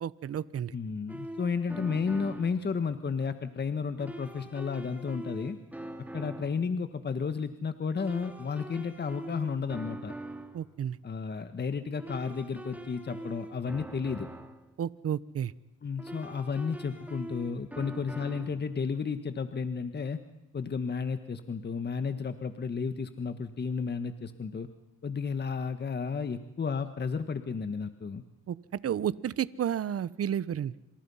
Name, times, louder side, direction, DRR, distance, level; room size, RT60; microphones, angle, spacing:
voice 1, 0.0-0.7 10.5-11.0 14.8-15.5 28.5-28.6 28.8-30.7, right 9 dB, 50° right, 18 dB, 1.0 m, -31 dB
voice 2, 0.7-5.6 6.1-10.1 11.0-14.3 15.8-20.2 20.5-24.7 25.0-28.2, left 5 dB, 35° left, 9 dB, 1.6 m, -32 dB
sound 1, 1.1-2.6 4.0-6.6 8.0-10.7 12.0-14.6 16.0-18.7, right 1 dB, 5° right, 3.3 m, -43 dB
28.5 x 27.0 x 5.7 m, 0.96 s
cardioid pair, 90°, 30 cm